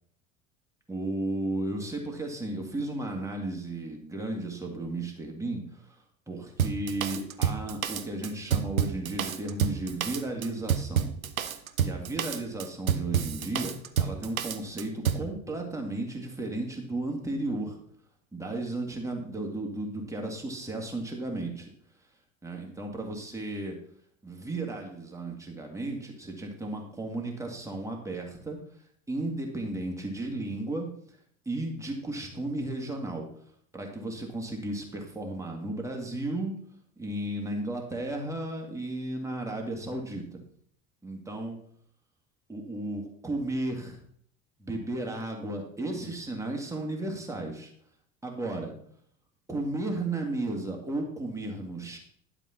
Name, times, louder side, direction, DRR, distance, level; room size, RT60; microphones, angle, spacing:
voice 1, 0.9-6.0 6.3-11.1 11.8-17.8 18.3-21.7 22.4-23.8 24.2-28.6 29.1-30.9 31.5-33.3 33.7-36.5 37.0-40.4 41.0-41.6 42.5-44.0 44.6-47.7 48.2-48.7 49.5-52.0, right 2 dB, 5° right, 1 dB, 2.2 m, -34 dB
Drum kit, 6.6-15.3, right 8 dB, 80° right, 0.7 m, -29 dB
11.0 x 5.0 x 5.8 m, 0.62 s
figure-of-eight pair, 65°, 41 cm